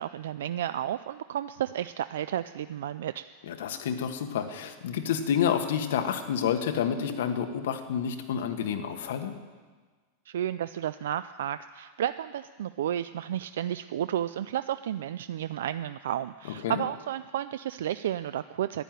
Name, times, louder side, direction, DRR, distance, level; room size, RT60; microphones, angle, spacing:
voice 1, 0.0-3.2 10.3-18.8, right 11 dB, 85° right, 13 dB, 0.3 m, -32 dB
voice 2, 3.5-9.3 16.6-16.8, left 8 dB, 75° left, 7 dB, 1.3 m, -29 dB
11.0 x 10.5 x 9.3 m, 1.4 s
supercardioid pair, 180°, 0 cm